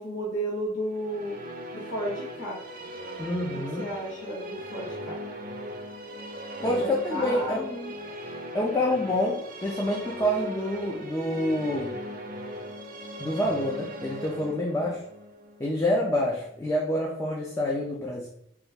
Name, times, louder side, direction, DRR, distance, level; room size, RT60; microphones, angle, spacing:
voice 1, 0.0-1.4 1.7-2.6 3.8-5.2 6.6-8.0, equal, 70° left, -7 dB, 1.1 m, -33 dB
Musical instrument, 0.9-16.3, equal, 45° right, 0.4 m, -39 dB
voice 2, 3.2-3.9 6.6-7.7 8.5-12.0 13.2-15.0 15.6-18.3, left 1 dB, 15° left, -2 dB, 0.4 m, -27 dB
3.0 x 2.3 x 3.4 m, 0.73 s
head